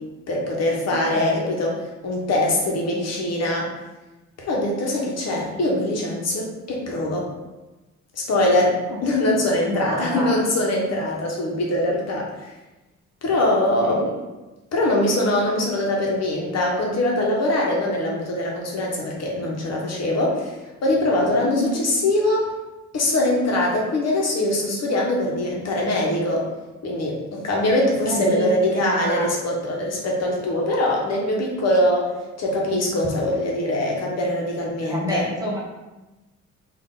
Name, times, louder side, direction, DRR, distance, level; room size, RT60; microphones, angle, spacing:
voice 1, 0.3-1.7 2.0-3.7 4.4-7.3 8.1-12.3 13.2-14.0 14.7-20.5 20.8-22.5 22.9-26.5 26.8-35.2, left 1 dB, 55° left, -2 dB, 0.9 m, -22 dB
voice 2, 1.1-1.5 8.9-9.0 9.7-10.4 13.7-14.1 21.4-21.8 28.1-29.3 34.9-35.6, equal, 15° right, -6 dB, 1.2 m, -28 dB
3.4 x 2.5 x 3.9 m, 1.1 s
cardioid pair, 90°, 30 cm